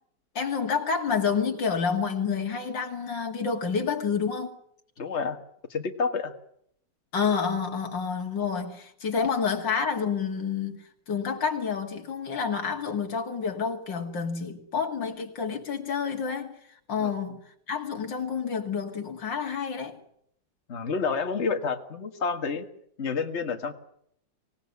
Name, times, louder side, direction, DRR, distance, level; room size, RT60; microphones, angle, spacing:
voice 1, 0.3-4.6 7.1-16.5 16.9-17.4 17.7-20.0, left 6 dB, 85° left, 3.1 m, -29 dB
voice 2, 5.0-5.4 5.7-6.3 17.0-17.1 20.7-22.7 23.0-23.7, left 5 dB, 40° left, 2.0 m, -29 dB
25.0 x 18.5 x 9.7 m
omnidirectional pair, 1.9 m